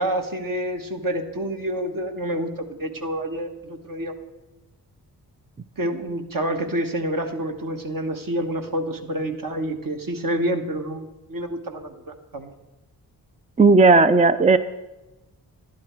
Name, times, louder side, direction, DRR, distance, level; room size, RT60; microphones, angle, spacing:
voice 1, 0.0-4.1 5.8-12.5, right 1 dB, 55° right, 4 dB, 1.5 m, -28 dB
voice 2, 13.6-14.6, right 3 dB, 20° right, 12 dB, 0.4 m, -14 dB
11.5 x 11.5 x 4.6 m, 1.0 s
cardioid pair, 50°, 40 cm